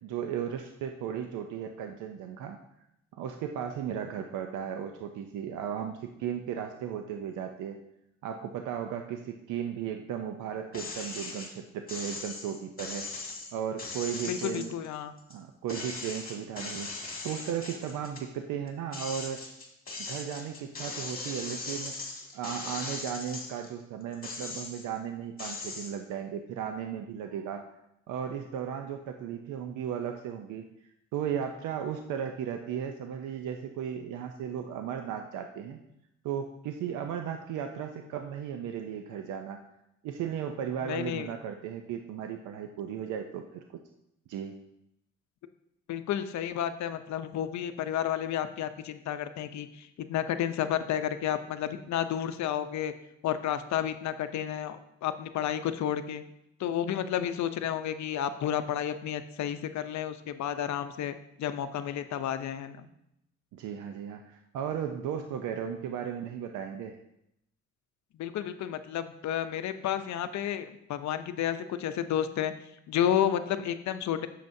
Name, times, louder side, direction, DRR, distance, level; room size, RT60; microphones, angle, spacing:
voice 1, 0.0-2.6 3.1-7.8 8.2-13.1 13.5-14.7 15.3-16.9 17.2-19.4 20.1-27.6 28.1-30.7 31.1-35.8 36.2-39.6 40.0-43.6 44.3-44.6 63.5-67.0, right 8 dB, 85° right, 5 dB, 0.6 m, -35 dB
sound 1, 10.7-11.5 11.9-15.4 15.7-18.3 18.7-23.7 24.1-25.0 25.4-25.9, left 3 dB, 30° left, 2.1 m, -39 dB
voice 2, 14.2-15.1 40.8-41.3 45.9-52.9 53.2-56.2 56.6-62.9 68.2-72.5 72.9-74.3, left 10 dB, 65° left, 10 dB, 0.6 m, -31 dB
9.1 x 6.6 x 2.7 m, 0.82 s
cardioid pair, 90°, 30 cm